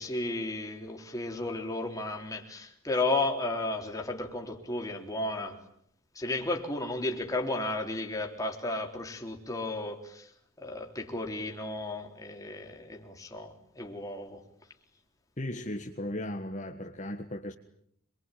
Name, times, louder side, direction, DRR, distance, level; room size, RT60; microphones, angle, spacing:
voice 1, 0.0-5.6 6.2-10.3 10.6-14.4, left 2 dB, 15° left, 2 dB, 3.6 m, -33 dB
voice 2, 15.4-17.5, left 1 dB, 35° left, 3 dB, 1.6 m, -36 dB
27.0 x 23.0 x 9.2 m, 0.70 s
head